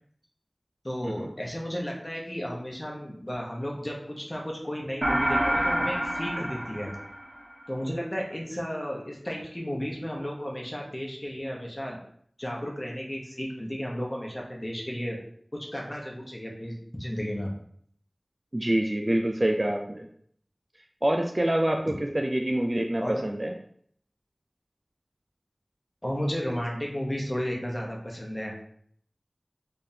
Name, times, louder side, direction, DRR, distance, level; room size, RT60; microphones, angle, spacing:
voice 1, 0.8-6.9 7.7-12.0 12.4-15.2 15.5-17.5 23.0-23.2 26.0-28.5, equal, 25° left, -2 dB, 1.0 m, -33 dB
sound 1, 5.0-7.6, right 1 dB, 55° right, 0.8 m, -27 dB
voice 2, 18.5-20.1 21.0-23.6, right 1 dB, 35° right, 3 dB, 0.3 m, -26 dB
3.5 x 3.3 x 2.8 m, 0.63 s
wide cardioid pair, 50°, 0 cm